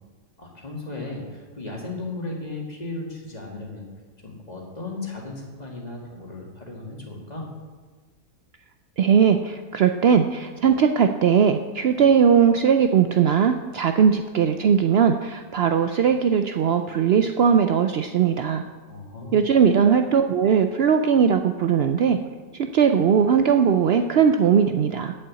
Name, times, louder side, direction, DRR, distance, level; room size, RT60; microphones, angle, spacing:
voice 1, 0.4-3.9 4.2-7.5 18.9-19.4, left 2 dB, 30° left, -1 dB, 2.1 m, -35 dB
voice 2, 9.0-18.6 19.3-22.2 22.5-25.1, right 7 dB, 65° right, 6 dB, 0.7 m, -19 dB
8.4 x 6.9 x 8.5 m, 1.4 s
omnidirectional pair, 1.3 m